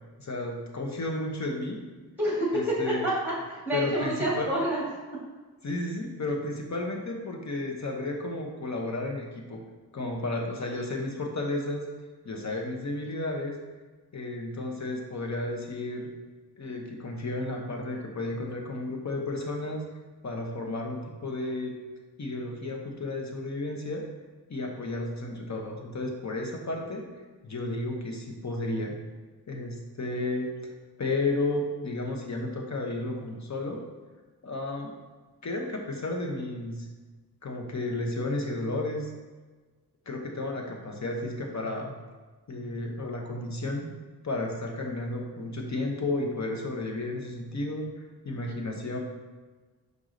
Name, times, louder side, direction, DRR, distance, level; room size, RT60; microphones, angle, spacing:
voice 1, 0.2-1.8 2.5-3.1 3.7-4.5 5.6-9.6 9.9-11.9 12.2-13.5 14.1-16.1 16.6-19.8 20.2-21.8 22.2-24.1 24.5-27.1 27.4-29.0 29.5-30.5 31.0-33.8 34.4-34.9 35.4-36.9 37.4-39.1 40.1-41.9 42.5-43.8 44.2-47.9 48.2-49.0, left 2 dB, 45° left, 1 dB, 1.0 m, -32 dB
voice 2, 2.2-2.5 3.0-4.8, right 1 dB, 5° right, -5 dB, 1.6 m, -28 dB
5.4 x 4.8 x 3.8 m, 1.3 s
wide cardioid pair, 110°, 38 cm